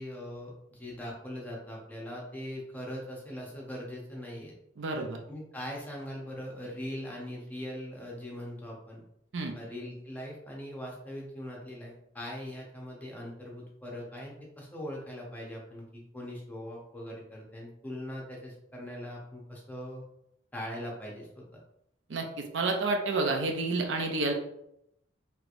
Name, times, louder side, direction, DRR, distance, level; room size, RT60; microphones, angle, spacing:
voice 1, 0.0-4.5 4.9-9.0 9.5-20.0 20.5-21.6, equal, 10° left, -2 dB, 0.7 m, -41 dB
voice 2, 4.8-5.2 9.3-9.5 22.1-24.3, right 3 dB, 70° right, 3 dB, 0.5 m, -29 dB
3.2 x 3.2 x 2.5 m, 0.77 s
head